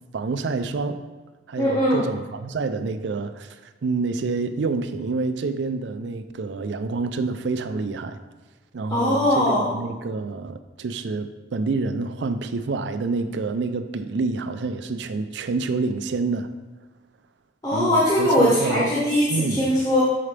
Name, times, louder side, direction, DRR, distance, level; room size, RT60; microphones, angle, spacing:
voice 1, 0.1-1.0 1.5-8.2 8.7-16.5 17.7-18.9 19.3-19.7, right 3 dB, 70° right, 10 dB, 0.4 m, -27 dB
voice 2, 1.6-2.0 8.9-9.7 17.6-20.0, left 1 dB, 20° left, -8 dB, 1.0 m, -20 dB
6.9 x 4.9 x 3.3 m, 1.3 s
head